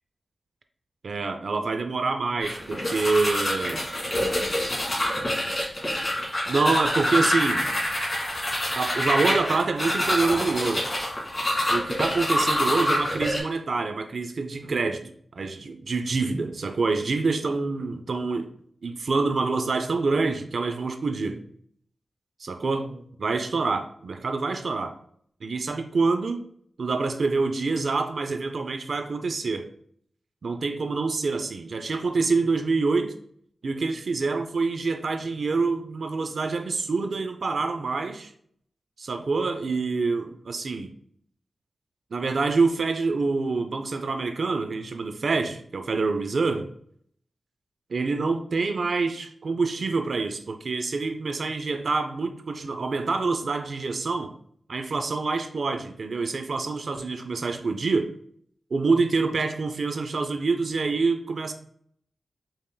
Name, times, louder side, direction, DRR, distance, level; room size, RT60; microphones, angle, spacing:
voice 1, 1.0-3.8 6.5-7.6 8.7-10.9 11.7-18.5 18.8-21.5 22.4-25.0 25.4-26.5 26.8-29.7 30.4-33.2 33.6-38.3 39.0-40.9 42.1-46.7 47.9-54.3 54.7-58.1 58.7-61.5, right 4 dB, 70° right, 7 dB, 0.4 m, -26 dB
sound 1, 2.4-13.4, left 1 dB, 25° left, 1.7 m, -26 dB
5.3 x 3.5 x 2.2 m, 0.62 s
cardioid pair, 65°, 0 cm